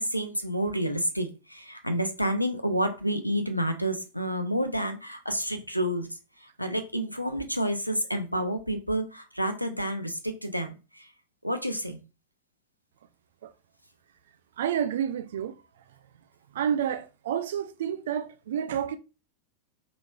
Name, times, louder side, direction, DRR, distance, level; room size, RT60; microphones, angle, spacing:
voice 1, 0.0-6.1 6.4-11.1 11.4-12.0, equal, 90° left, 0.6 m, -29 dB
voice 2, 14.6-15.6 16.5-19.0, right 9 dB, 60° right, 0.4 m, -29 dB
4.9 x 3.0 x 2.3 m
figure-of-eight pair, 90°, 0 cm